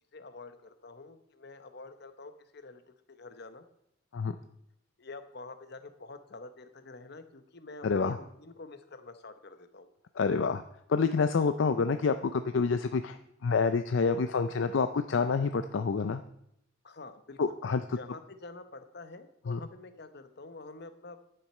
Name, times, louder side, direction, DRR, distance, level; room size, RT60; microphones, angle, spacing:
voice 1, 0.1-2.8 3.1-3.6 5.0-9.9 16.8-17.5 17.9-21.2, left 3 dB, 55° left, 10 dB, 0.9 m, -47 dB
voice 2, 7.8-8.2 10.2-10.6 10.9-16.2 17.4-17.8 19.5-19.6, left 5 dB, 75° left, 10 dB, 0.5 m, -28 dB
11.0 x 9.1 x 4.3 m, 0.76 s
head